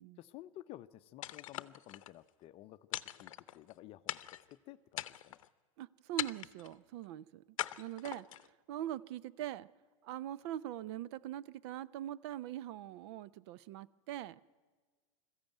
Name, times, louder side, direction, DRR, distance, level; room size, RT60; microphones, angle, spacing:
voice 1, 0.2-4.2 4.5-5.4, left 14 dB, 35° left, 13 dB, 0.6 m, -53 dB
sound 1, 1.2-2.1 2.9-3.7 4.1-4.5 4.9-5.5 6.2-6.7 7.6-8.5, left 13 dB, 80° left, 0.7 m, -41 dB
voice 2, 5.8-7.4 7.8-9.7 10.0-14.4, right 12 dB, 55° right, 20 dB, 0.6 m, -42 dB
21.0 x 14.5 x 9.2 m, 1.4 s
supercardioid pair, 130°, 17 cm